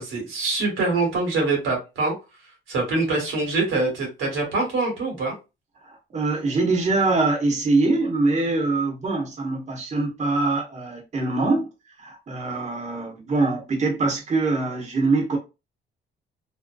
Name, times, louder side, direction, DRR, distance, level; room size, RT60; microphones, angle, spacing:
voice 1, 0.0-2.1 2.7-5.3, right 3 dB, 85° right, 1.2 m, -24 dB
voice 2, 5.8-11.7 12.0-15.4, right 3 dB, 35° right, 0.8 m, -23 dB
2.6 x 2.1 x 2.3 m
cardioid pair, 90°, 20 cm